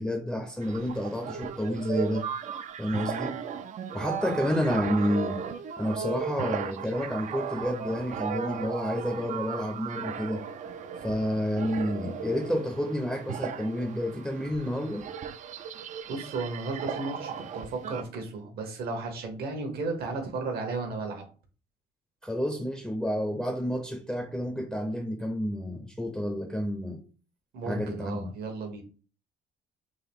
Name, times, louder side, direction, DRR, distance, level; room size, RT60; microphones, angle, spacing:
voice 1, 0.0-2.3 2.8-3.4 3.9-5.4 5.8-10.4 11.0-15.1 22.2-27.0 27.7-28.3, equal, 5° left, 0.5 m, -30 dB
sound 1, 0.6-18.0, right 7 dB, 45° right, 0.4 m, -36 dB
voice 2, 16.1-21.3 27.5-28.8, right 3 dB, 70° right, 1.2 m, -34 dB
3.8 x 2.5 x 3.5 m
cardioid pair, 110°, 17 cm